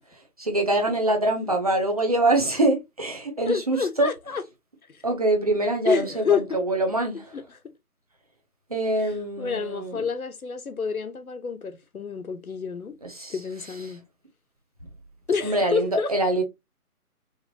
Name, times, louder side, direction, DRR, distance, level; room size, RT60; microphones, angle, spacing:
voice 1, 0.4-4.1 5.0-7.2 8.7-10.0 13.0-13.3 15.4-16.4, right 1 dB, 25° right, 0.8 m, -24 dB
voice 2, 3.4-4.4 5.8-6.4 7.3-7.6 8.9-13.0 13.3-14.0 15.3-16.1, left 5 dB, 70° left, 1.2 m, -28 dB
4.9 x 2.7 x 2.8 m
figure-of-eight pair, 165°, 45 cm